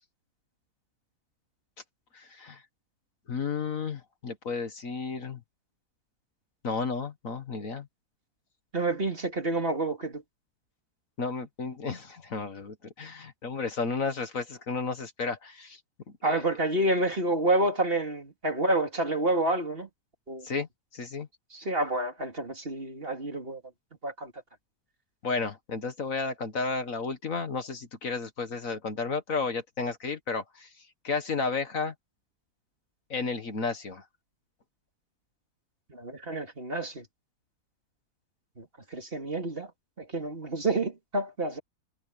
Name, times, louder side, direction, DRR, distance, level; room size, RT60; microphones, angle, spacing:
voice 1, 2.1-2.6 3.3-5.4 6.6-7.9 11.2-15.8 16.2-16.5 20.4-20.7 20.9-21.3 25.2-31.9 33.1-34.0, left 4 dB, 55° left, 1.9 m, -32 dB
voice 2, 8.7-10.2 16.2-19.9 20.3-20.5 21.5-23.6 24.0-24.3 35.9-37.1 38.6-39.7 40.0-41.6, right 2 dB, 35° right, 2.9 m, -29 dB
omnidirectional pair, 1.7 m